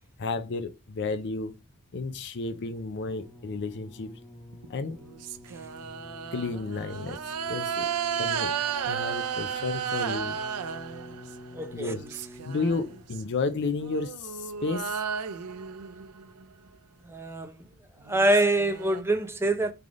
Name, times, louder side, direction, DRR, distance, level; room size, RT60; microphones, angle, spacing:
voice 1, 0.2-1.5 1.9-4.2 4.7-5.0 6.3-7.9 8.2-8.6 8.9-10.4 11.7-12.0 12.4-15.0, left 3 dB, 50° left, 0.5 m, -32 dB
sound 1, 3.1-13.2 14.0-14.1, left 1 dB, 20° left, 0.8 m, -49 dB
sound 2, 4.5-11.5 11.8-13.2 13.8-16.4 17.7-17.8 18.1-19.0, right 7 dB, 85° right, 0.5 m, -33 dB
voice 2, 11.5-11.9 17.1-17.5 18.1-19.7, right 1 dB, 10° right, 0.6 m, -25 dB
3.7 x 3.4 x 3.7 m
head